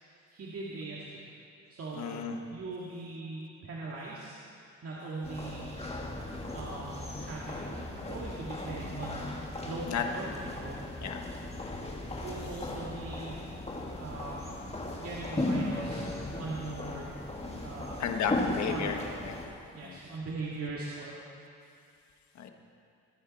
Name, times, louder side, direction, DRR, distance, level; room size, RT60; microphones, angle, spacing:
voice 1, 0.3-1.3 1.7-5.8 6.5-7.7 8.1-9.4 9.6-10.9 12.2-13.4 14.0-14.5 15.0-17.1 17.6-18.0 18.5-18.9 19.7-21.2, right 3 dB, 50° right, -5 dB, 2.2 m, -40 dB
voice 2, 1.9-2.4 9.9-10.0 11.0-11.2 12.1-12.2 18.0-19.0 19.2-19.4 19.8-20.0 22.3-22.5, left 7 dB, 65° left, 4 dB, 1.4 m, -33 dB
sound 1, 5.2-19.5, left 2 dB, 20° left, 2.1 m, -37 dB
23.5 x 9.4 x 4.3 m, 2.5 s
cardioid pair, 90°, 30 cm